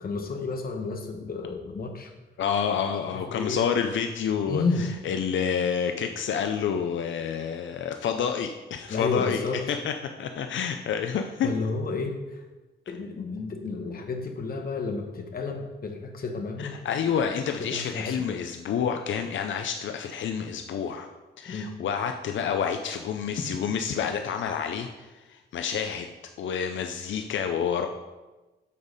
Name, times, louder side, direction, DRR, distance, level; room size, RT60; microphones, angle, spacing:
voice 1, 0.0-2.1 3.3-3.6 4.5-4.9 8.9-9.6 11.4-12.2 12.9-16.8 17.7-18.2 21.5-21.7, left 4 dB, 50° left, 4 dB, 1.1 m, -31 dB
voice 2, 2.4-11.5 16.6-21.1 21.4-26.1 26.4-27.9, left 7 dB, 85° left, 6 dB, 0.5 m, -29 dB
8.4 x 7.2 x 4.1 m, 1.1 s
wide cardioid pair, 155°, 19 cm